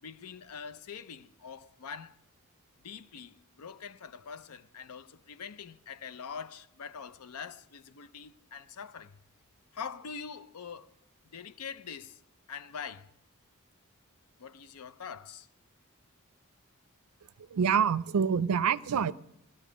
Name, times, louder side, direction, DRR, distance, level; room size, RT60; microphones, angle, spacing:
voice 1, 0.0-2.2 2.8-9.2 9.7-10.9 11.3-12.2 12.5-13.1 14.4-15.5, left 6 dB, 85° left, 0.5 m, -44 dB
voice 2, 17.4-19.1, right 7 dB, 80° right, 0.4 m, -26 dB
16.5 x 12.0 x 5.0 m
head